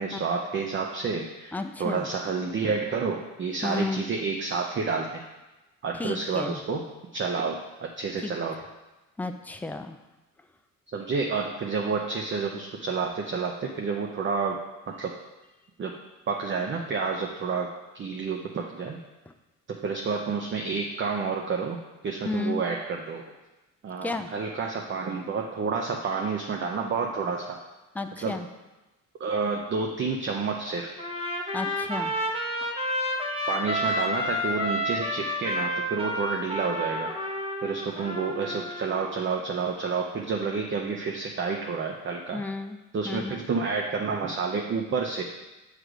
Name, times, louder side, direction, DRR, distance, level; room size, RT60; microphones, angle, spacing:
voice 1, 0.0-1.5 1.8-5.2 5.8-6.8 7.1-8.6 10.9-14.6 14.9-15.1 15.8-15.9 16.3-17.7 17.9-19.0 19.7-21.8 22.0-23.2 23.8-27.6 28.2-28.3 29.2-30.9 33.5-37.1 37.6-42.4 42.9-45.2, right 5 dB, 40° right, 1 dB, 0.6 m, -29 dB
voice 2, 1.5-2.1 3.6-4.1 5.9-6.6 8.2-8.3 9.2-10.0 22.2-22.6 24.0-24.3 27.9-28.5 31.5-32.1 42.3-42.8 43.0-43.4, left 3 dB, 5° left, 7 dB, 0.4 m, -32 dB
Trumpet, 31.0-39.1, left 1 dB, 20° right, 1.0 m, -30 dB
6.3 x 3.3 x 4.9 m, 1.1 s
cardioid pair, 90°, 30 cm